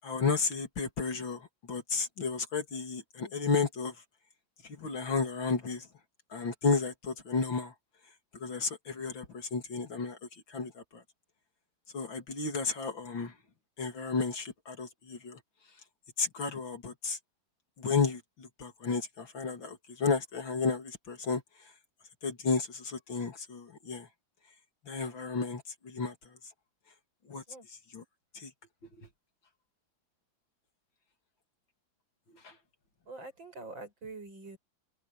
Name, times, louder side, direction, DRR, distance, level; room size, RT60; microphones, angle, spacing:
voice 1, 0.0-4.0 4.6-5.9 6.3-7.7 8.3-10.2 10.5-11.0 11.9-13.3 13.8-15.4 16.2-17.2 17.8-21.4 22.2-24.1 24.8-26.4 27.3-27.4 27.7-28.0 28.3-28.5 29.0-29.1 32.4-32.6, left 5 dB, 85° left, 3.8 m, -33 dB
voice 2, 33.1-34.6, right 3 dB, 90° right, 8.1 m, -45 dB
open air
omnidirectional pair, 2.0 m